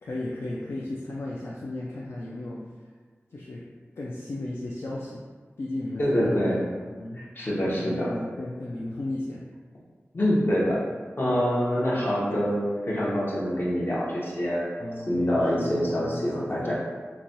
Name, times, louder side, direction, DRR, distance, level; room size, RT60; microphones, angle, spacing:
voice 1, 0.0-2.6 3.3-3.6 4.0-5.2 5.6-6.6 6.9-7.2 7.8-9.4 14.8-16.7, left 2 dB, 65° left, -5 dB, 0.3 m, -35 dB
voice 2, 6.0-6.6 7.2-8.1 10.1-10.8 11.2-14.6 15.1-16.7, equal, 50° left, -6 dB, 0.8 m, -25 dB
3.1 x 2.2 x 2.6 m, 1.5 s
wide cardioid pair, 70°, 5 cm